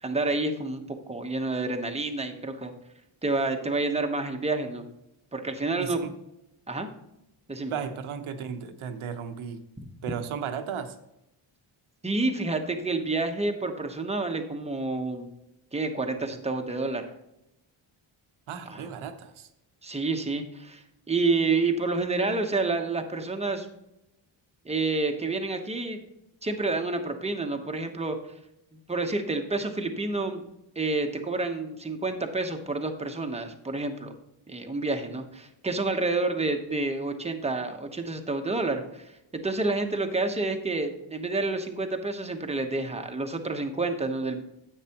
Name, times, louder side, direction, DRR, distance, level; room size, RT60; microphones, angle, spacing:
voice 1, 0.0-0.8 1.1-2.7 3.2-4.8 5.3-6.0 6.7-6.9 7.5-7.7 9.8-9.9 12.0-15.3 15.7-17.0 18.7-18.9 19.8-23.7 24.6-26.0 26.4-28.2 28.7-30.5 30.7-34.1 34.5-44.4, right 3 dB, 15° right, 5 dB, 1.0 m, -29 dB
voice 2, 5.8-6.1 7.7-9.6 10.0-11.0 18.5-19.5, right 7 dB, 85° right, 8 dB, 1.0 m, -35 dB
9.9 x 8.2 x 2.9 m, 0.88 s
cardioid pair, 115°, 47 cm